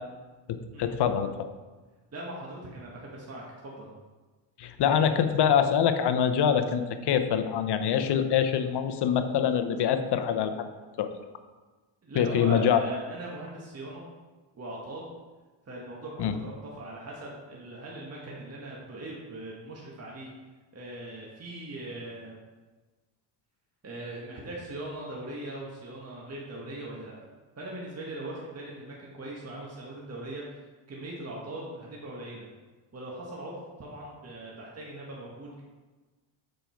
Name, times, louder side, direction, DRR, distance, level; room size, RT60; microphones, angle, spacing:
voice 1, 0.5-1.3 4.6-10.7 11.0-11.1 12.2-12.8 16.2-16.3, left 8 dB, 55° left, 9 dB, 0.8 m, -25 dB
voice 2, 2.1-3.9 8.0-8.1 12.0-14.0 14.5-15.1 15.7-20.3 20.7-22.4 23.8-27.1 27.5-32.5 32.9-33.5 33.8-35.6, right 1 dB, 30° right, -4 dB, 1.6 m, -40 dB
6.8 x 5.3 x 4.6 m, 1.3 s
cardioid pair, 90°, 49 cm